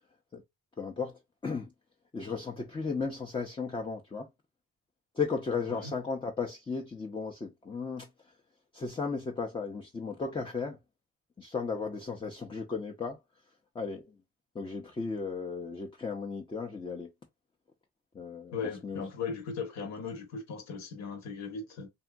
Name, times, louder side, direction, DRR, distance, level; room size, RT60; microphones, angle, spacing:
voice 1, 0.8-1.7 2.1-4.3 5.1-8.1 8.7-10.8 11.4-13.2 13.7-14.1 14.5-17.1 18.1-19.0, left 4 dB, 15° left, 0.5 m, -35 dB
voice 2, 18.5-21.9, left 5 dB, 65° left, 1.1 m, -38 dB
2.7 x 2.6 x 2.2 m
cardioid pair, 90°, 30 cm